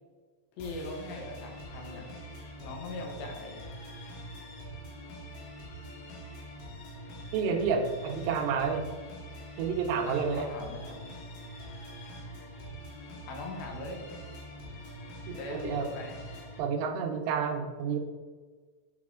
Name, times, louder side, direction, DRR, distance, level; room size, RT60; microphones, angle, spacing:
voice 1, 0.6-2.1 2.6-3.6 10.1-11.1 13.3-14.1 15.3-16.3, left 2 dB, 90° left, 0 dB, 3.3 m, -40 dB
sound 1, 0.6-16.6, equal, 65° left, 2.6 m, -44 dB
voice 2, 7.3-8.9 9.6-10.5 15.3-15.9 16.6-18.0, right 6 dB, 85° right, 3 dB, 2.9 m, -30 dB
8.5 x 4.2 x 3.7 m, 1.4 s
omnidirectional pair, 4.9 m